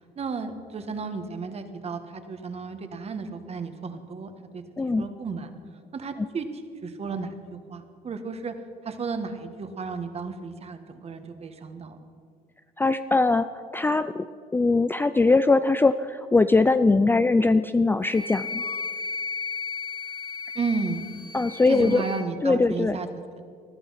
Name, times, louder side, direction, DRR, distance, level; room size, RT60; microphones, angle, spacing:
voice 1, 0.1-4.6 5.0-5.5 5.9-6.5 6.8-8.5 8.8-12.0 20.5-21.0 21.7-23.1, right 4 dB, 35° right, 8 dB, 1.6 m, -33 dB
voice 2, 12.8-13.5 13.7-14.3 14.5-18.6 21.3-22.0 22.4-23.0, left 3 dB, 10° left, 11 dB, 0.4 m, -21 dB
Wind instrument woodwind instrument, 18.1-22.3, left 4 dB, 30° left, 3.2 m, -34 dB
20.0 x 12.0 x 5.8 m, 2.2 s
cardioid pair, 110°, 17 cm